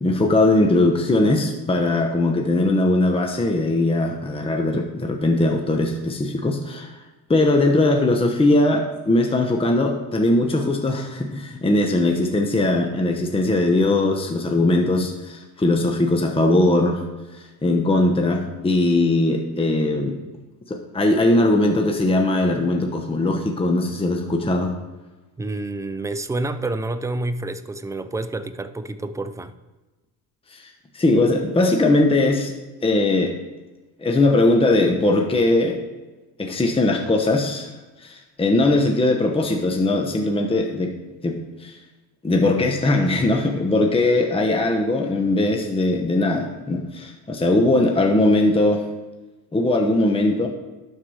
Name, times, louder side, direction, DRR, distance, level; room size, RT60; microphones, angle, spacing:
voice 1, 0.0-7.0 7.3-17.0 17.6-20.2 20.7-24.7 30.5-30.6 30.9-32.5 32.8-33.4 34.0-35.8 36.4-37.7 38.0-40.9 41.2-41.8 42.2-48.8 49.5-50.5, left 2 dB, 15° left, 3 dB, 1.0 m, -20 dB
voice 2, 25.4-29.5, right 2 dB, 10° right, 11 dB, 0.5 m, -28 dB
12.0 x 4.7 x 5.0 m, 1.2 s
cardioid pair, 105°, 39 cm